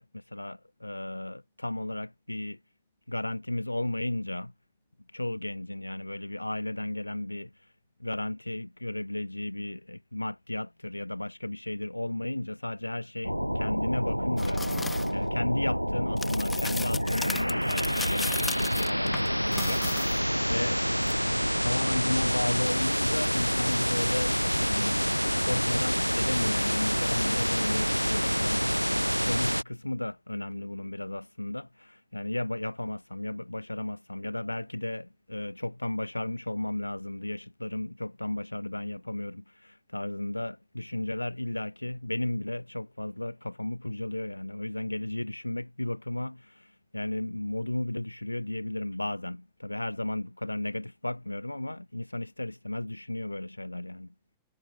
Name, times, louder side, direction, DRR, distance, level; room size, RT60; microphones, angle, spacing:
voice 1, 0.0-2.6 3.1-4.5 5.1-7.5 8.0-20.8 21.6-25.0 25.4-54.1, left 1 dB, 85° left, 0.9 m, -34 dB
sound 1, 13.2-29.6, equal, 90° right, 0.3 m, -27 dB
sound 2, 14.4-15.1 16.2-20.3 21.0-21.1, left 4 dB, 15° left, 1.8 m, -36 dB
figure-of-eight pair, 90°, 0 cm